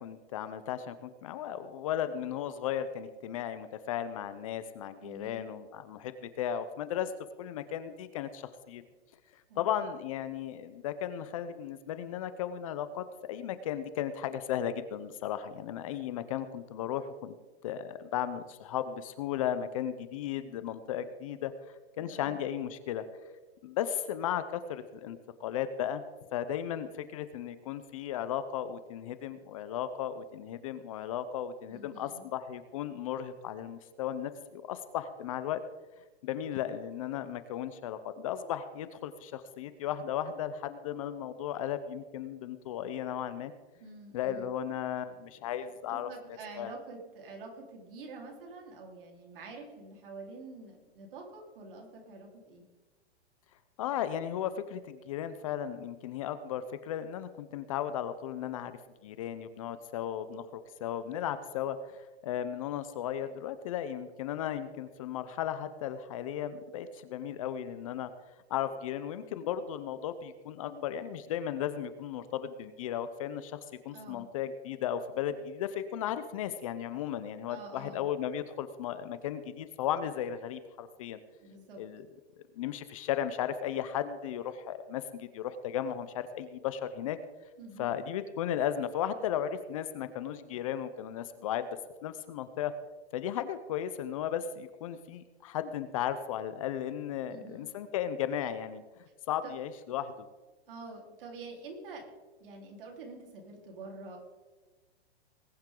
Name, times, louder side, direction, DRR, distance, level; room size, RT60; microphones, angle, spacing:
voice 1, 0.0-7.1 7.4-8.8 9.6-17.4 17.6-23.0 23.6-26.0 26.3-35.6 36.2-43.5 44.1-46.1 46.6-46.7 53.8-68.1 68.5-73.6 73.8-81.2 81.8-82.0 82.6-87.2 87.8-91.7 92.0-92.7 93.1-98.8 99.3-100.1, left 10 dB, 35° left, 12 dB, 0.6 m, -35 dB
voice 2, 5.0-5.5 9.5-9.7 22.0-22.4 31.7-32.3 43.8-44.5 45.9-52.7 73.9-74.3 77.5-78.1 81.4-81.8 87.6-88.0 97.3-97.7 99.4-99.5 100.7-102.1 102.4-104.2, right 3 dB, 55° right, 1 dB, 4.0 m, -47 dB
20.5 x 10.5 x 3.8 m, 1.3 s
hypercardioid pair, 160°, 32 cm